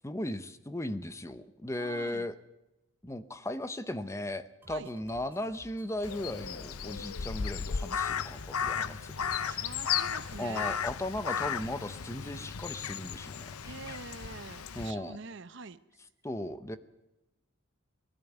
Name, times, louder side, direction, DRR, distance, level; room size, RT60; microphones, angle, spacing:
voice 1, 0.0-2.4 3.0-9.7 10.4-14.0 14.7-15.2 16.2-16.8, left 1 dB, 15° left, 11 dB, 0.7 m, -37 dB
voice 2, 1.8-2.3 4.7-4.9 9.1-10.8 13.6-15.8, right 4 dB, 55° right, 14 dB, 0.9 m, -45 dB
sound 1, 4.6-12.0, equal, 10° right, 1.9 m, -56 dB
Crow, 6.0-14.9, left 7 dB, 90° left, 0.7 m, -35 dB
20.0 x 14.5 x 9.1 m, 0.99 s
head